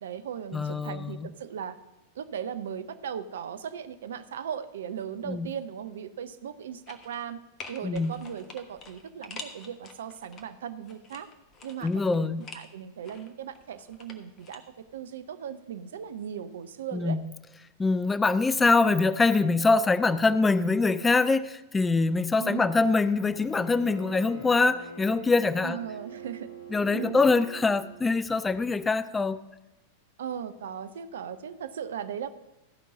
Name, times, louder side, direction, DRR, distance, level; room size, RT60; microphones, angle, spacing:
voice 1, 0.0-1.8 2.1-7.4 7.7-11.3 11.6-14.6 14.9-17.2 22.4-22.7 25.6-26.5 26.9-27.4 30.2-32.3, right 8 dB, 60° right, 11 dB, 0.6 m, -37 dB
voice 2, 0.5-1.3 5.3-5.5 7.8-8.1 11.8-12.4 16.9-17.2 17.8-25.8 26.7-29.4, left 3 dB, 15° left, 15 dB, 0.3 m, -24 dB
sound 1, 6.9-7.3 7.6-10.4 10.9-12.7 13.0-14.6 14.9-15.0, left 4 dB, 30° left, 1.1 m, -46 dB
Bowed string instrument, 23.3-28.2, right 2 dB, 70° left, 1.8 m, -45 dB
14.0 x 5.4 x 6.1 m, 1.0 s
figure-of-eight pair, 90°, 0 cm